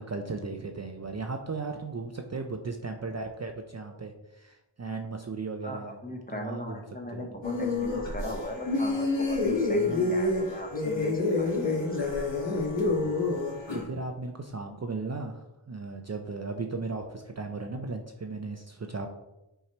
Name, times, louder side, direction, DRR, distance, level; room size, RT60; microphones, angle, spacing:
voice 1, 0.0-6.0 6.3-6.8 7.1-7.3 12.8-13.4 13.7-19.1, right 3 dB, 35° right, 4 dB, 0.5 m, -36 dB
voice 2, 5.6-12.1, left 1 dB, 20° left, 2 dB, 1.0 m, -38 dB
sound 1, 7.4-13.8, left 3 dB, 60° left, 1.9 m, -28 dB
5.7 x 4.6 x 4.3 m, 0.97 s
wide cardioid pair, 90°, 49 cm